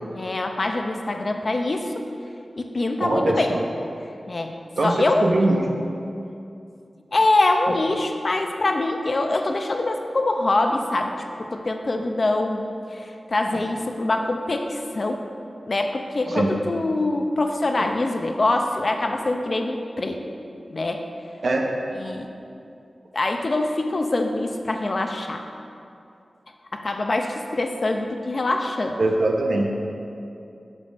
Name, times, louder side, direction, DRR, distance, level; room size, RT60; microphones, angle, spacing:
voice 1, 0.1-2.0 2.6-3.6 4.3-4.5 4.8-5.2 7.1-12.6 12.9-15.2 15.6-20.2 20.7-21.1 22.0-22.3 23.1-25.4 26.7-29.0, left 2 dB, 50° left, 4 dB, 0.7 m, -24 dB
voice 2, 3.0-3.6 4.8-5.9 16.3-16.5 21.4-21.6 22.0-22.1 29.0-29.7, right 2 dB, 75° right, 1 dB, 1.0 m, -22 dB
7.6 x 6.3 x 5.3 m, 2.6 s
wide cardioid pair, 85°, 0 cm